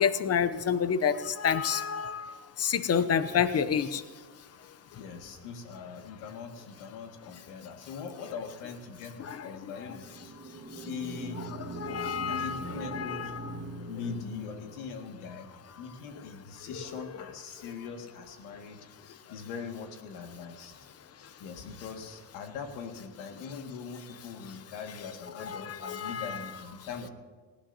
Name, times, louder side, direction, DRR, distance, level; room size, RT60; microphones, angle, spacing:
voice 1, 0.0-2.3 2.6-4.0 9.2-9.5 11.8-13.4 25.4-26.3, left 7 dB, 30° left, 13 dB, 0.6 m, -29 dB
voice 2, 5.0-10.4 10.9-11.5 12.3-13.3 13.9-20.8 21.2-27.1, left 5 dB, 80° left, 3 dB, 2.1 m, -41 dB
sound 1, 10.0-14.9, right 2 dB, 25° right, 1.6 m, -42 dB
18.5 x 16.0 x 2.8 m, 1.4 s
cardioid pair, 125°, 49 cm